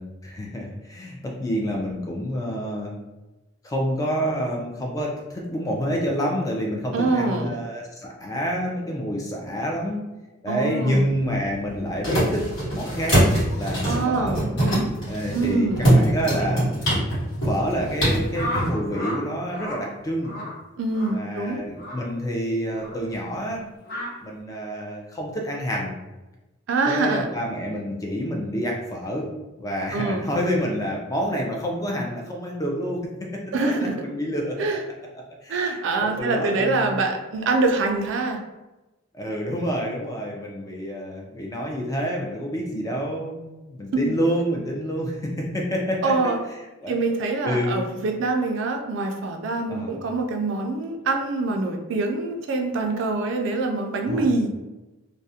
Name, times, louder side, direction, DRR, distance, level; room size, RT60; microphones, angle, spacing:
voice 1, 0.0-3.0 3.6-10.1 10.4-13.2 13.6-14.4 15.1-17.0 17.4-20.3 21.1-23.6 24.2-26.0 26.8-29.3 29.6-34.6 35.4-37.0 39.1-46.3 46.8-47.0 47.4-47.9 49.7-50.0 54.0-54.3, equal, 15° left, -1 dB, 0.3 m, -28 dB
voice 2, 6.9-7.6 10.5-11.1 13.8-14.4 15.3-15.8 20.8-21.6 26.7-27.3 29.9-30.3 33.5-34.0 34.6-34.8 35.5-38.4 44.0-44.1 46.0-46.4 46.9-54.5, right 3 dB, 60° right, 4 dB, 0.3 m, -24 dB
sound 1, 11.0-18.7, right 1 dB, 65° left, 1.2 m, -23 dB
sound 2, 18.3-19.2 19.5-19.8 20.2-20.5 20.9-21.1 21.8-22.0 22.7-22.9 23.8-24.1, left 1 dB, 45° left, 0.7 m, -32 dB
2.3 x 2.0 x 2.6 m, 1.1 s
head